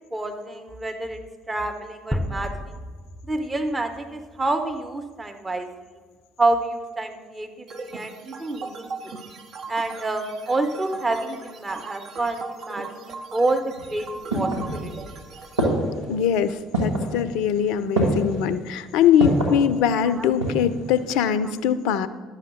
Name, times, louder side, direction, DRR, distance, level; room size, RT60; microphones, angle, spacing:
voice 1, 0.1-1.2 1.5-2.7 3.3-5.7 6.4-8.9 9.7-14.1 14.3-14.9 20.0-20.3, right 2 dB, 20° right, 5 dB, 1.0 m, -28 dB
sound 1, 2.1-5.0, equal, 5° left, 0.7 m, -33 dB
sound 2, 7.7-15.7, right 4 dB, 50° right, 0.7 m, -38 dB
sound 3, 13.8-15.1 15.6-16.1 16.7-17.1 17.9-18.4 19.2-19.6 20.1-20.7 21.0-21.1, right 1 dB, 80° right, 1.8 m, -24 dB
voice 2, 16.1-22.1, left 8 dB, 60° left, 14 dB, 0.4 m, -22 dB
11.0 x 7.5 x 3.9 m, 1.5 s
figure-of-eight pair, 55°, 0 cm